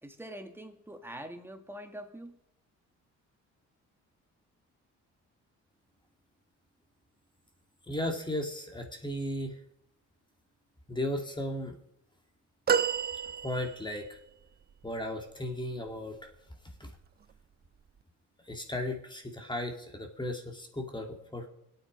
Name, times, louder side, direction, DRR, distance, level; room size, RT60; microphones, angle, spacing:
voice 1, 0.0-2.4, right 1 dB, 5° right, 5 dB, 1.9 m, -44 dB
voice 2, 7.9-9.6 10.9-11.7 13.4-14.2 14.8-16.3 16.8-16.9 18.5-21.5, left 1 dB, 15° left, 3 dB, 2.4 m, -35 dB
sound 1, 12.7-14.1 14.8-14.9, right 7 dB, 35° right, 0.5 m, -30 dB
23.5 x 9.0 x 5.3 m, 0.74 s
cardioid pair, 90°, 30 cm